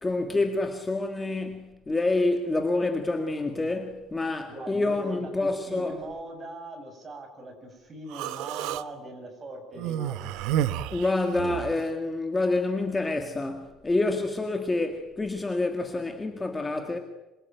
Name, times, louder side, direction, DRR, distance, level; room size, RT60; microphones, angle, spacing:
voice 1, 0.0-6.0 10.9-17.0, left 2 dB, 10° left, 1.9 m, -27 dB
voice 2, 4.5-10.3, right 1 dB, 25° right, 7.7 m, -41 dB
Human voice, 8.1-8.8 9.8-11.7, right 11 dB, 85° right, 1.3 m, -30 dB
27.0 x 24.0 x 9.2 m
cardioid pair, 170°, 0 cm